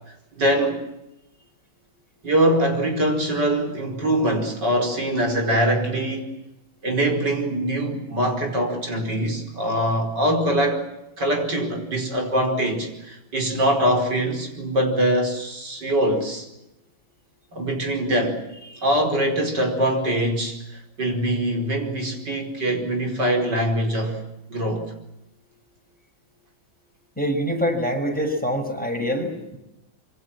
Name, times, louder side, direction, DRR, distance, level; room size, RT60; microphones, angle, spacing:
voice 1, 0.4-0.8 2.2-6.3 6.8-10.8 11.2-16.5 17.5-18.4 18.8-24.2 24.5-24.9, right 1 dB, 60° right, 4 dB, 5.5 m, -23 dB
voice 2, 27.2-29.6, equal, 5° left, 2 dB, 6.5 m, -25 dB
26.5 x 25.0 x 7.5 m, 0.92 s
omnidirectional pair, 2.1 m